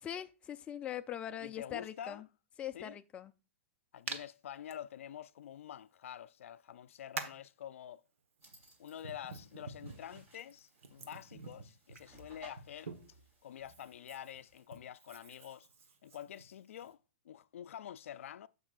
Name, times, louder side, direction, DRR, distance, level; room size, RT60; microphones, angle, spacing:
voice 1, 0.0-2.2 2.6-3.3, left 10 dB, 15° left, 0.4 m, -42 dB
voice 2, 1.4-2.2 2.7-3.0 3.9-8.0 8.8-12.9 13.4-15.7 16.0-17.0 17.2-18.5, left 10 dB, 80° left, 0.4 m, -47 dB
Hands, 4.1-4.2 4.7-4.8 6.0-6.1 7.1-7.5 8.4-13.2 13.6-16.9, right 5 dB, 90° right, 1.3 m, -47 dB
sound 1, 8.4-14.6, right 1 dB, 30° right, 3.2 m, -61 dB
15.0 x 5.4 x 2.4 m
hypercardioid pair, 150°, 7 cm